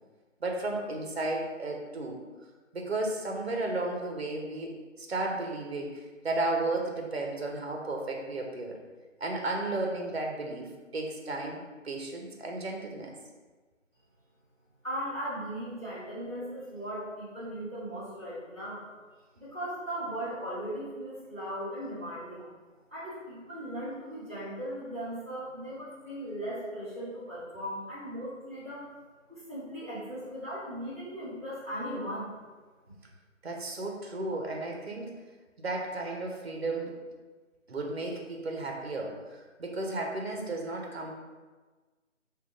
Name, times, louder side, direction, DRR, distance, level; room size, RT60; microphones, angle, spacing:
voice 1, 0.4-2.2 2.7-8.7 9.2-13.1 33.4-35.1 35.6-37.0 37.7-41.1, right 2 dB, 55° right, 1 dB, 0.7 m, -34 dB
voice 2, 14.8-18.8 19.4-22.5 22.9-28.9 29.3-32.3, equal, 10° right, -17 dB, 0.9 m, -38 dB
5.5 x 2.3 x 2.5 m, 1.3 s
figure-of-eight pair, 165°, 38 cm